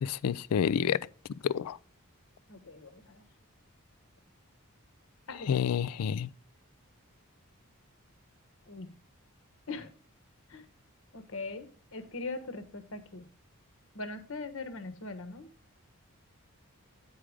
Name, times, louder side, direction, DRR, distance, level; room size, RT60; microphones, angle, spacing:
voice 1, 0.0-1.0 1.4-1.8 5.3-6.3, left 8 dB, 85° left, 0.4 m, -29 dB
voice 2, 2.5-2.9 5.3-5.6 8.7-8.9 9.7-9.9 10.5-10.6 11.1-11.7 11.9-13.2 13.9-15.5, left 3 dB, 65° left, 1.1 m, -40 dB
9.0 x 4.9 x 5.0 m
head